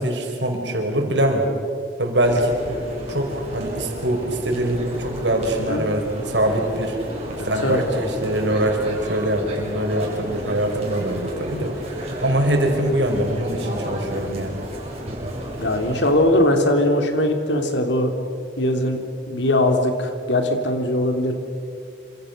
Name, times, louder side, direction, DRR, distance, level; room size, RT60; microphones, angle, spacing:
voice 1, 0.0-1.5 2.0-2.6 3.1-7.0 7.4-11.7 12.0-14.6, right 1 dB, 75° right, 2 dB, 5.2 m, -23 dB
sound 1, 2.2-16.1, right 1 dB, 35° right, 6.4 m, -32 dB
voice 2, 7.4-7.8 15.6-18.1 18.6-19.0 19.3-21.4, left 1 dB, 80° left, 5 dB, 3.5 m, -20 dB
27.5 x 27.0 x 6.8 m, 2.4 s
head